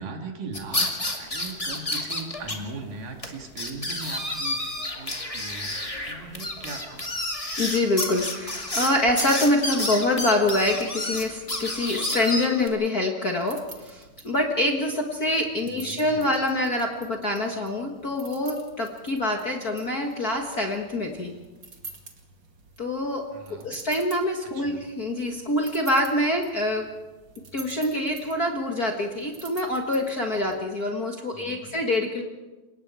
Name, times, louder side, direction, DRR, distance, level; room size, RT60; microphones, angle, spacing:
voice 1, 0.0-7.1 15.6-16.3 23.3-23.8 24.5-24.8 31.3-31.8, right 4 dB, 90° right, 2 dB, 4.1 m, -39 dB
sound 1, 0.5-2.6 2.8-2.9 3.2-3.3 3.6-12.7, left 1 dB, 15° left, 1.7 m, -30 dB
voice 2, 7.6-21.3 22.8-26.9 27.5-32.2, left 1 dB, 40° left, 2 dB, 1.4 m, -25 dB
sound 2, 13.4-30.6, right 3 dB, 35° right, 2.6 m, -48 dB
30.0 x 18.5 x 4.7 m, 1.2 s
omnidirectional pair, 3.7 m